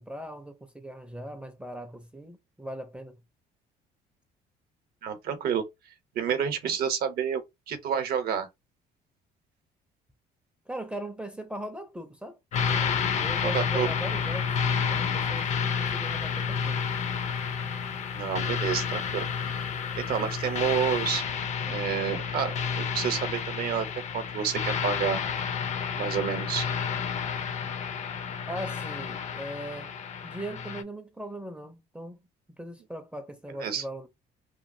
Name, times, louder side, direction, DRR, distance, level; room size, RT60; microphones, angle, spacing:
voice 1, 0.0-3.2 10.7-12.4 12.6-16.9 28.5-29.9 30.2-32.2 32.6-34.1, right 1 dB, 5° right, 0.4 m, -39 dB
voice 2, 5.0-5.6 6.1-7.4 7.7-8.5 13.4-13.9 18.1-19.6 20.0-21.2 21.7-23.9 24.1-25.2 25.9-26.7 33.6-33.8, right 8 dB, 65° right, 0.7 m, -29 dB
sound 1, 12.5-30.8, left 6 dB, 45° left, 0.5 m, -30 dB
3.0 x 2.3 x 2.5 m
cardioid pair, 110°, 17 cm